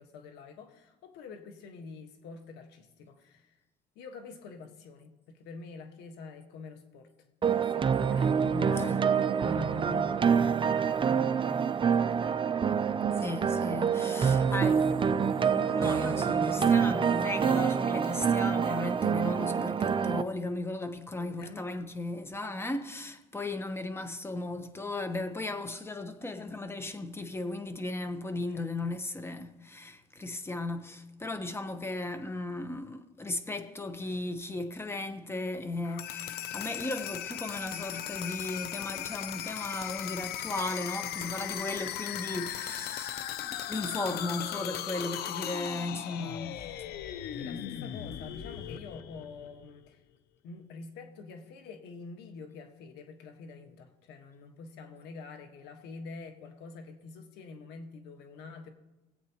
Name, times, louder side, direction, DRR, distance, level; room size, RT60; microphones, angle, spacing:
voice 1, 0.0-3.6 3.9-7.1 7.4-10.4 10.8-13.4 14.1-14.8 21.2-21.7 28.5-28.6 47.3-50.0 50.4-58.7, left 4 dB, 90° left, 1.5 m, -47 dB
sound 1, 7.4-20.2, right 7 dB, 30° right, 0.5 m, -26 dB
voice 2, 8.5-9.0 13.2-14.9 15.5-46.6, left 2 dB, 15° left, 1.0 m, -36 dB
sound 2, 35.8-49.7, left 11 dB, 70° left, 0.6 m, -38 dB
22.0 x 8.4 x 3.0 m
cardioid pair, 110°, 17 cm